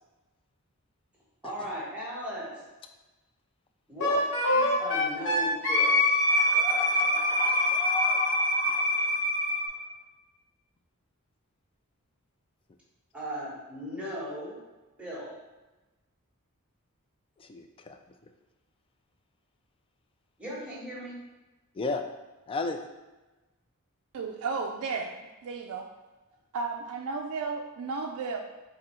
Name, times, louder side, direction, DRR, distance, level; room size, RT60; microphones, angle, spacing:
voice 1, 1.4-2.5 3.9-6.0 13.1-14.6 15.0-15.3 20.4-21.2, equal, 5° right, -7 dB, 1.2 m, -37 dB
Wind instrument woodwind instrument, 4.0-9.6, left 1 dB, 60° left, 0.9 m, -25 dB
voice 2, 6.3-9.7 17.4-18.0 21.8-22.0 22.5-22.8, left 3 dB, 25° left, 6 dB, 0.3 m, -35 dB
voice 3, 24.1-25.2 25.4-25.8 26.5-28.4, right 4 dB, 70° right, 1 dB, 0.4 m, -33 dB
3.7 x 2.7 x 4.3 m, 1.1 s
head